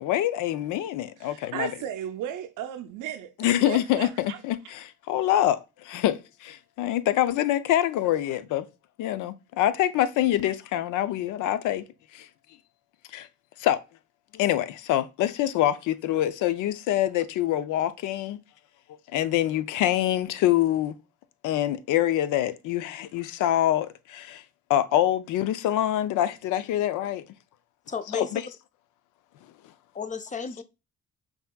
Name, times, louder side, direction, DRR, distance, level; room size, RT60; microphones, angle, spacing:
voice 1, 0.0-1.7 3.4-8.7 9.0-11.9 12.1-12.3 13.1-13.3 13.6-13.8 14.3-18.4 19.1-21.0 21.4-24.4 24.7-27.3 28.1-28.4, left 12 dB, 85° left, 0.5 m, -25 dB
voice 2, 1.2-3.3 3.6-4.4, right 10 dB, 85° right, 0.5 m, -35 dB
voice 3, 27.9-28.3 29.9-30.6, left 5 dB, 25° left, 0.5 m, -32 dB
5.6 x 2.9 x 2.2 m
cardioid pair, 90°, 30 cm